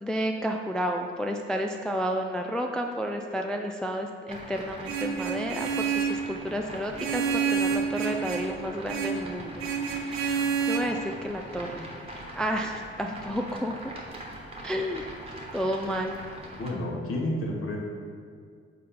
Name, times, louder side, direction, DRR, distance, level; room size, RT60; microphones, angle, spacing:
voice 1, 0.0-11.9 12.4-14.0 14.6-15.0 15.5-16.1, equal, ahead, 3 dB, 0.3 m, -31 dB
sound 1, 4.3-16.7, right 1 dB, 20° right, 1.3 m, -42 dB
Vehicle horn car horn honking, 4.8-6.2 7.0-8.5 8.9-9.2 9.6-10.8, right 6 dB, 60° right, 0.8 m, -28 dB
voice 2, 16.6-17.8, left 1 dB, 45° left, -2 dB, 1.3 m, -30 dB
6.5 x 4.1 x 3.7 m, 2.1 s
figure-of-eight pair, 40°, 31 cm